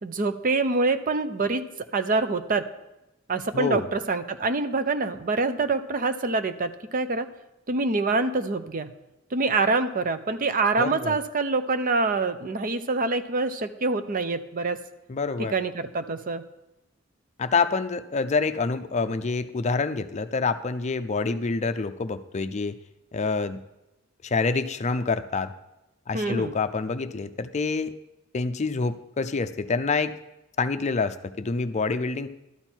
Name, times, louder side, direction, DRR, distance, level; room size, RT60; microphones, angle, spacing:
voice 1, 0.0-1.6 1.9-2.6 3.3-7.3 7.7-8.9 9.3-14.8 15.4-16.4 26.1-26.5, right 3 dB, 45° right, 10 dB, 0.7 m, -25 dB
voice 2, 3.5-3.9 10.8-11.2 15.1-15.5 17.4-22.8 23.1-23.6 24.2-25.5 26.1-27.9 28.3-30.1 30.6-32.3, left 4 dB, 35° left, 10 dB, 0.5 m, -27 dB
12.5 x 8.9 x 4.5 m, 0.93 s
head